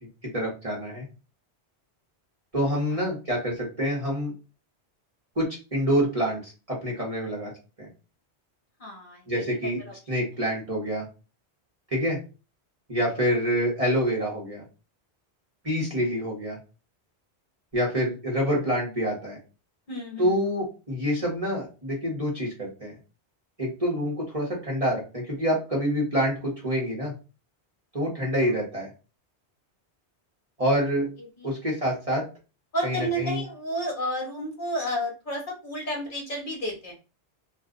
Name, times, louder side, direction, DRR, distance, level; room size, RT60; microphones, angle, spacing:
voice 1, 0.2-1.1 2.5-4.3 5.4-7.5 7.8-7.9 9.3-9.8 10.1-11.1 11.9-12.2 12.9-14.6 15.6-16.6 17.7-19.4 20.2-22.9 23.6-27.1 27.9-28.9 30.6-31.1 31.4-32.2 32.8-33.4, equal, 35° right, -3 dB, 1.1 m, -27 dB
voice 2, 8.8-9.2 9.9-10.0 19.9-20.4 31.4-31.5 32.7-36.9, equal, 50° left, 0 dB, 1.0 m, -31 dB
2.5 x 2.3 x 3.7 m, 0.32 s
omnidirectional pair, 1.1 m